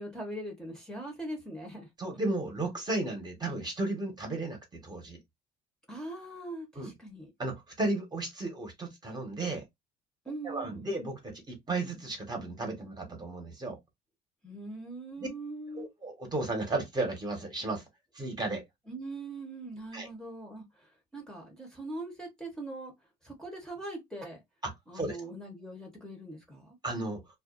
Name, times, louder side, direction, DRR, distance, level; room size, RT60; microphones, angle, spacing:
voice 1, 0.0-1.9 5.9-7.3 10.2-10.9 14.4-15.9 18.9-22.9 23.2-24.4 24.9-26.8, right 2 dB, 5° left, 0.9 m, -41 dB
voice 2, 2.0-5.2 6.8-6.9 7.4-9.6 10.4-13.8 15.2-15.3 15.7-17.8 18.1-18.6 19.9-20.1 24.6-25.2 26.8-27.2, right 2 dB, 25° right, 1.0 m, -34 dB
2.4 x 2.2 x 2.4 m
cardioid pair, 110°, 17 cm